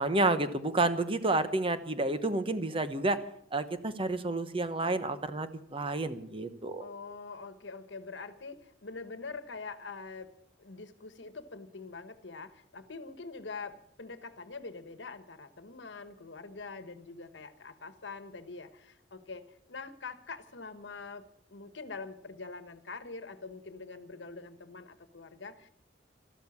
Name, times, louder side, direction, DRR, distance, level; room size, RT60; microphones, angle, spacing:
voice 1, 0.0-3.2 3.5-6.8, right 2 dB, 30° right, 11 dB, 1.0 m, -30 dB
voice 2, 6.8-10.3 10.6-25.7, left 4 dB, 85° left, 11 dB, 1.2 m, -44 dB
13.5 x 12.5 x 7.2 m, 0.71 s
head